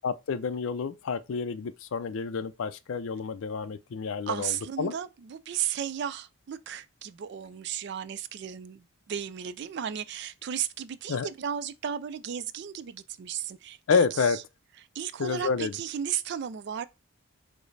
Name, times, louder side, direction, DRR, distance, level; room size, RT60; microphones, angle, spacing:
voice 1, 0.0-4.9 11.1-11.3 13.9-14.4 15.2-15.7, left 5 dB, 70° left, 0.4 m, -29 dB
voice 2, 4.3-14.4 14.9-16.8, right 9 dB, 55° right, 0.3 m, -34 dB
4.9 x 2.0 x 4.0 m
head